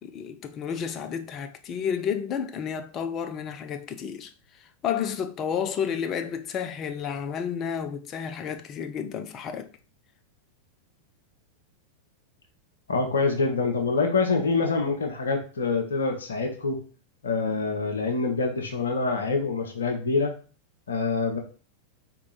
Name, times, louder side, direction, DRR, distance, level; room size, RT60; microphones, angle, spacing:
voice 1, 0.0-9.7, left 7 dB, 30° left, 0.5 m, -31 dB
voice 2, 12.9-16.8 17.2-20.3 20.9-21.4, left 4 dB, 70° left, 0.9 m, -25 dB
4.6 x 2.9 x 4.0 m
figure-of-eight pair, 90°, 0 cm